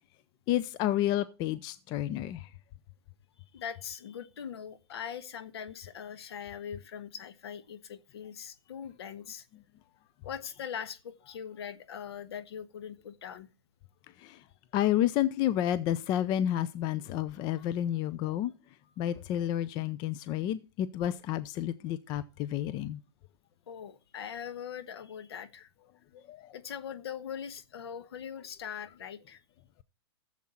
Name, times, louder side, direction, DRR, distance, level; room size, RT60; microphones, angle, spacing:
voice 1, 0.5-2.5 14.2-14.4 14.7-18.5 19.0-23.0 26.1-26.5, left 12 dB, 30° left, 0.6 m, -30 dB
voice 2, 3.5-9.5 10.2-13.5 20.3-20.4 23.7-25.7 26.5-29.4, left 8 dB, 70° left, 1.4 m, -41 dB
14.0 x 7.4 x 4.3 m
hypercardioid pair, 135°, 14 cm